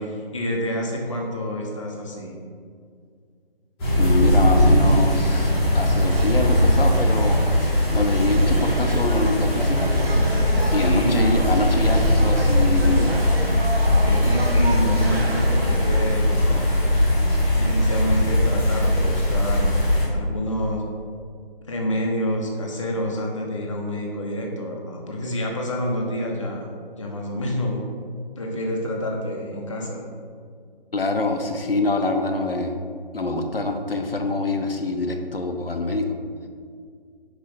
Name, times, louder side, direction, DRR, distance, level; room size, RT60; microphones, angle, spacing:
voice 1, 0.0-2.4 10.5-11.4 13.9-16.4 16.7-17.1 17.6-20.8 21.7-28.0 28.4-30.1, equal, 35° left, -1 dB, 0.7 m, -28 dB
sound 1, 3.8-20.0, left 1 dB, 5° left, 0.9 m, -20 dB
voice 2, 4.0-7.4 7.9-9.9 10.7-13.2 30.9-32.8 33.1-36.2, left 2 dB, 75° left, 4 dB, 0.7 m, -25 dB
sound 2, 5.3-16.1, right 2 dB, 90° right, 0.7 m, -33 dB
5.5 x 4.8 x 4.2 m, 2.1 s
figure-of-eight pair, 150°, 29 cm